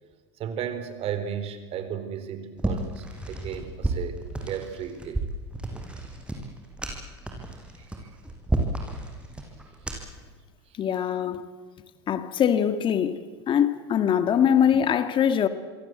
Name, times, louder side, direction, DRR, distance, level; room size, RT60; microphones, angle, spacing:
voice 1, 0.4-5.2, right 8 dB, 45° right, 4.1 m, -34 dB
sound 1, 2.6-10.2, right 2 dB, 5° right, 6.7 m, -32 dB
voice 2, 10.8-11.4 12.1-15.5, left 8 dB, 35° left, 1.9 m, -23 dB
27.5 x 23.5 x 8.0 m
hypercardioid pair, 100°, 14 cm